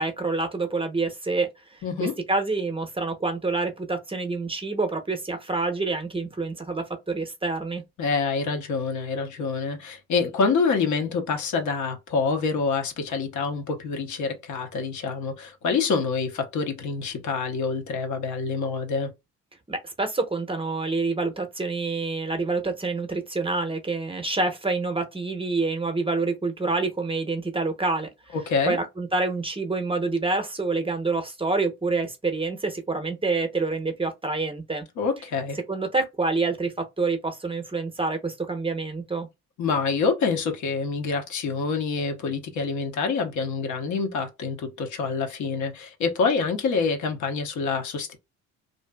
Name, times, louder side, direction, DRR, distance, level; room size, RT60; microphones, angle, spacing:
voice 1, 0.0-7.8 19.7-28.1 28.7-34.8 35.7-39.3, right 3 dB, 15° right, 0.7 m, -27 dB
voice 2, 1.8-2.1 8.0-19.1 28.3-28.8 35.0-35.6 39.6-48.2, left 4 dB, 60° left, 0.9 m, -26 dB
2.6 x 2.4 x 2.2 m
supercardioid pair, 65°, 33 cm